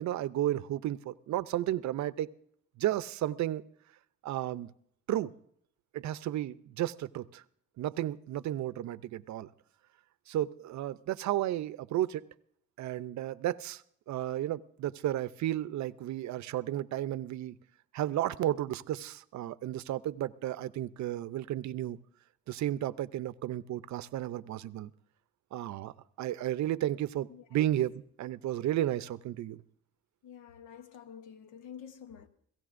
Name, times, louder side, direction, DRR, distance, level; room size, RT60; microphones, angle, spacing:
voice 1, 0.0-2.3 2.8-3.6 4.2-4.7 5.1-5.3 5.9-7.4 7.8-9.5 10.3-12.3 12.8-13.8 14.1-17.6 17.9-22.0 22.5-24.9 25.5-25.9 26.2-29.6, right 13 dB, 65° right, 0.6 m, -33 dB
voice 2, 30.2-32.3, left 8 dB, 90° left, 1.0 m, -48 dB
27.5 x 16.5 x 2.6 m
cardioid pair, 90°, 30 cm